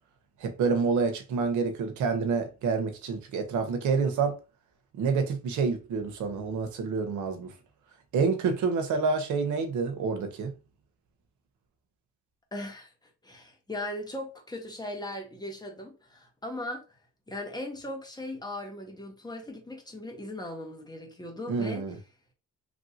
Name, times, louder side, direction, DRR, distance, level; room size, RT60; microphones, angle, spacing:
voice 1, 0.4-4.4 5.0-7.5 8.1-10.5 21.5-22.0, right 5 dB, 75° right, 0.8 m, -28 dB
voice 2, 12.5-12.9 13.2-16.8 17.3-21.8, left 1 dB, 15° left, 1.0 m, -38 dB
3.1 x 2.6 x 2.6 m
cardioid pair, 90°, 30 cm